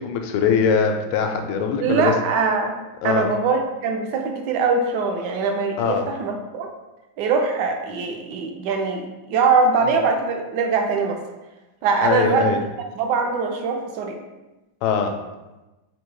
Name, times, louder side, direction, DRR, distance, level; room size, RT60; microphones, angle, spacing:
voice 1, 0.0-2.1 3.0-3.3 5.8-6.0 9.8-10.0 12.0-12.6 14.8-15.1, left 6 dB, 85° left, 5 dB, 1.4 m, -22 dB
voice 2, 1.8-2.8 3.0-6.7 7.2-11.2 11.8-12.5 13.0-14.2, right 4 dB, 75° right, 3 dB, 1.1 m, -22 dB
3.8 x 2.6 x 4.6 m, 1.1 s
omnidirectional pair, 2.2 m